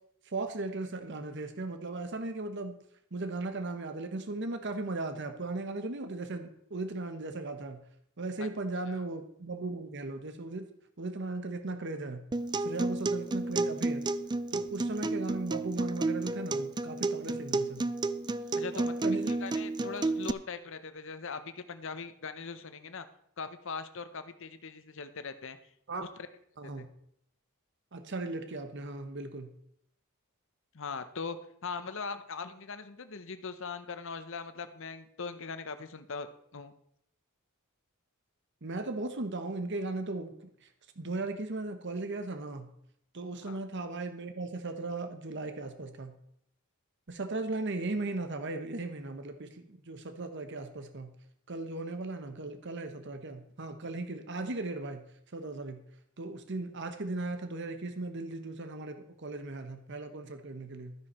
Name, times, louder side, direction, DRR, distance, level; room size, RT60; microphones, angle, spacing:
voice 1, 0.3-2.7 3.1-7.8 8.2-10.7 11.0-12.2 12.6-14.1 14.5-17.8 18.7-19.4 25.9-26.0 26.6-26.9 27.9-29.5 38.6-40.7 41.0-42.7 43.1-46.1 47.1-51.1 51.5-55.0 55.3-55.8 56.2-60.9, right 2 dB, 55° right, 8 dB, 1.0 m, -37 dB
Acoustic guitar, 12.3-20.3, right 2 dB, 20° right, 0.3 m, -31 dB
voice 2, 18.5-23.1 23.4-25.6 26.0-26.1 26.6-26.9 30.7-31.4 31.6-36.3 36.5-36.7 43.4-43.6, left 5 dB, 60° left, 10 dB, 0.9 m, -40 dB
12.5 x 9.8 x 4.3 m, 0.71 s
head